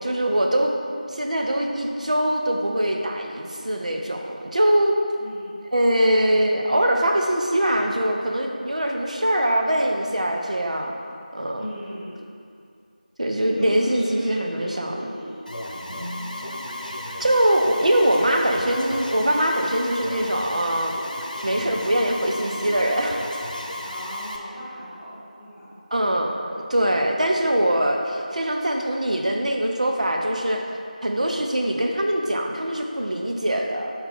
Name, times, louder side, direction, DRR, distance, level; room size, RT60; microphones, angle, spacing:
voice 1, 0.0-0.7 1.1-4.9 5.7-10.9 11.3-11.7 13.2-15.1 17.2-21.0 21.4-23.2 25.9-30.6 31.0-33.9, right 1 dB, 55° right, 2 dB, 0.6 m, -22 dB
voice 2, 11.5-12.2 13.5-15.5 23.8-25.7, equal, ahead, -18 dB, 0.5 m, -37 dB
Alarm, 15.5-24.4, left 1 dB, 70° left, 0.8 m, -34 dB
sound 1, 15.8-18.3, equal, 15° left, 0.9 m, -41 dB
5.4 x 4.4 x 4.1 m, 2.4 s
figure-of-eight pair, 175°, 5 cm